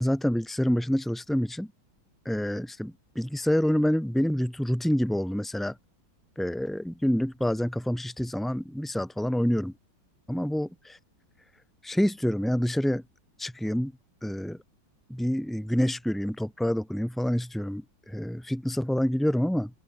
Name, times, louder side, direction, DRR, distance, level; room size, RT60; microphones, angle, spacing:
voice 1, 0.0-1.7 2.2-5.7 6.4-9.7 10.3-11.0 11.8-13.0 13.4-13.9 14.2-14.6 15.1-19.7, equal, ahead, 4.4 m, -27 dB
open air
omnidirectional pair, 2.1 m